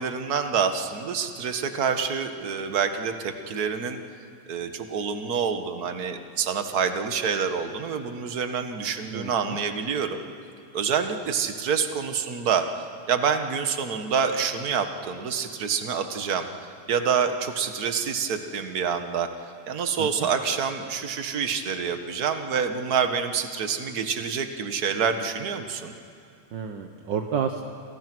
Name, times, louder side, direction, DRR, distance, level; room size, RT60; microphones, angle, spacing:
voice 1, 0.0-4.0 4.5-10.2 10.7-16.5 16.9-19.3 19.7-25.9, right 6 dB, 45° right, 7 dB, 1.3 m, -27 dB
voice 2, 9.1-9.6 20.0-20.3 26.5-27.6, right 7 dB, 65° right, 5 dB, 1.2 m, -30 dB
29.0 x 27.5 x 6.2 m, 2.4 s
omnidirectional pair, 3.4 m